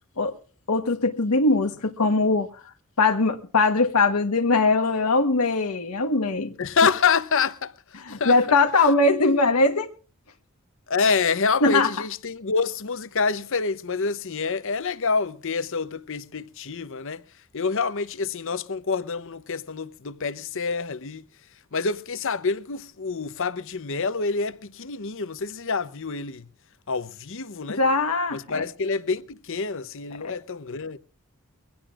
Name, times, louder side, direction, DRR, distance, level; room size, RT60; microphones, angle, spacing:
voice 1, 0.7-2.5 3.0-6.5 8.1-9.9 11.6-11.9 27.8-28.6, left 3 dB, 90° left, 1.3 m, -21 dB
voice 2, 6.6-8.4 10.9-17.2 17.5-21.3 21.7-26.5 26.9-27.8 28.3-31.0, left 5 dB, 60° left, 0.8 m, -27 dB
23.0 x 16.5 x 2.5 m
head